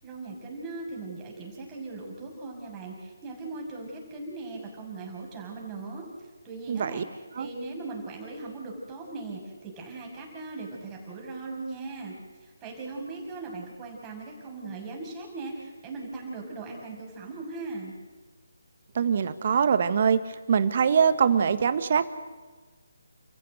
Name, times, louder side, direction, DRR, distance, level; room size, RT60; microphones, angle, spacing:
voice 1, 0.0-6.1 6.4-12.1 12.4-17.9, right 3 dB, 15° right, -2 dB, 6.6 m, -39 dB
voice 2, 6.7-7.0 7.4-7.5 18.9-20.2 20.5-22.1, right 7 dB, 45° right, 12 dB, 1.5 m, -23 dB
30.0 x 15.0 x 8.0 m, 1.4 s
figure-of-eight pair, 150°, 0 cm